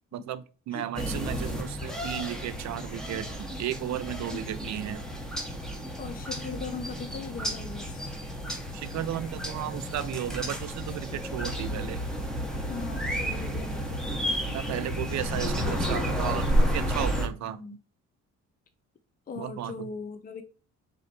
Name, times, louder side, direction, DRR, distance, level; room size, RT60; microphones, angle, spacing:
voice 1, 0.1-5.0 8.7-12.0 14.5-17.6 19.4-19.9, right 11 dB, 65° right, 0.5 m, -34 dB
sound 1, 1.0-17.3, equal, ahead, 1.1 m, -31 dB
voice 2, 4.3-4.7 6.0-8.1 12.7-14.3 17.4-17.8 19.3-20.4, left 5 dB, 30° left, 0.6 m, -40 dB
4.0 x 3.1 x 4.2 m
cardioid pair, 90°, 30 cm